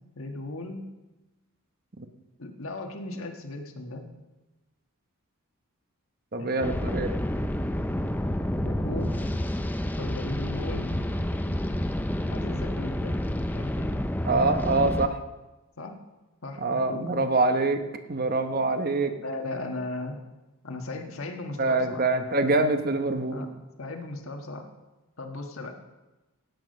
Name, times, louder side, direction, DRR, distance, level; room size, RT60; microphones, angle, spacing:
voice 1, 0.1-0.9 2.4-4.1 6.4-6.9 8.5-9.2 10.0-11.1 12.3-13.2 13.5-13.9 15.8-16.0 16.4-17.3 18.6-18.7 19.2-20.2 20.6-22.1 23.3-23.5 23.8-24.7 25.2-25.8, left 2 dB, 65° left, 4 dB, 1.5 m, -37 dB
voice 2, 6.3-7.1 14.2-15.2 16.6-17.8 18.1-19.1 21.6-23.4, right 3 dB, 45° right, 7 dB, 1.0 m, -25 dB
sound 1, 6.6-15.1, left 1 dB, 10° left, 0.5 m, -29 dB
sound 2, 9.2-15.0, equal, 30° left, 1.7 m, -41 dB
17.0 x 8.4 x 5.3 m, 1.1 s
head